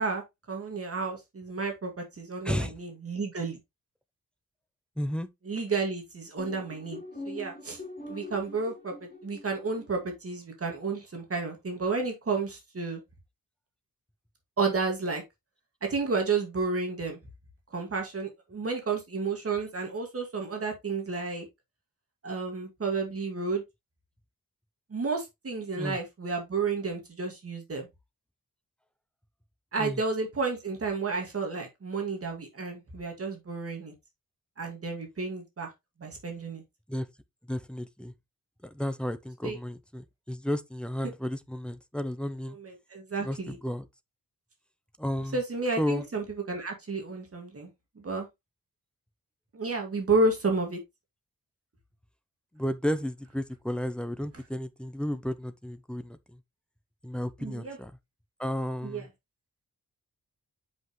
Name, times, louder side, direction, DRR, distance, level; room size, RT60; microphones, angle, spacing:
voice 1, 0.0-3.6 5.5-7.8 8.1-13.0 14.6-15.2 15.8-17.2 17.7-21.5 22.2-23.6 24.9-27.9 29.7-33.9 34.6-35.7 36.0-36.6 39.4-39.6 42.6-43.6 45.3-47.7 48.0-48.3 49.5-50.8 57.4-57.8 58.8-59.0, right 4 dB, 40° right, 2.0 m, -31 dB
voice 2, 2.4-2.8 5.0-5.3 25.8-26.0 29.8-30.0 36.9-37.1 37.5-38.1 38.6-42.6 43.2-43.9 45.0-45.4 45.8-46.1 52.5-56.4 57.0-57.9 58.4-59.1, equal, 5° left, 0.6 m, -33 dB
sound 1, 6.4-10.0, left 2 dB, 25° left, 3.1 m, -43 dB
8.0 x 5.3 x 3.1 m
wide cardioid pair, 180°, 34 cm